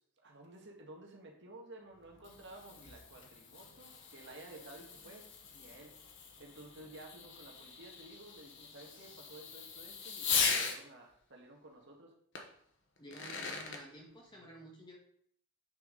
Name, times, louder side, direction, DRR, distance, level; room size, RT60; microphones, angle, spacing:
voice 1, 0.2-5.3 5.5-5.9 6.4-12.1, right 2 dB, 55° right, 0 dB, 1.8 m, -53 dB
Fireworks, 1.9-10.8 12.3-12.4 13.0-13.8, left 5 dB, 55° left, 1.2 m, -39 dB
voice 2, 13.0-15.0, equal, 20° left, -1 dB, 1.7 m, -52 dB
8.6 x 6.8 x 4.0 m, 0.65 s
head